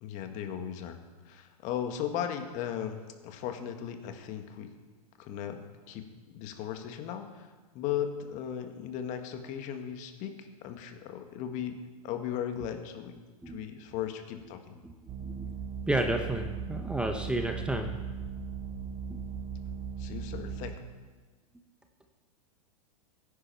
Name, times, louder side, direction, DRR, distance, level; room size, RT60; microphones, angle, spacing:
voice 1, 0.0-4.7 5.2-5.6 5.9-7.5 7.7-13.1 13.5-14.8 20.0-20.8, left 9 dB, 40° left, 6 dB, 1.6 m, -37 dB
sound 1, 15.1-20.7, right 6 dB, 30° right, 1.7 m, -38 dB
voice 2, 15.2-15.5 15.9-18.0 19.1-19.3 20.1-20.2, right 1 dB, 5° right, 4 dB, 0.8 m, -32 dB
16.0 x 10.0 x 4.5 m, 1.3 s
hypercardioid pair, 115°, 19 cm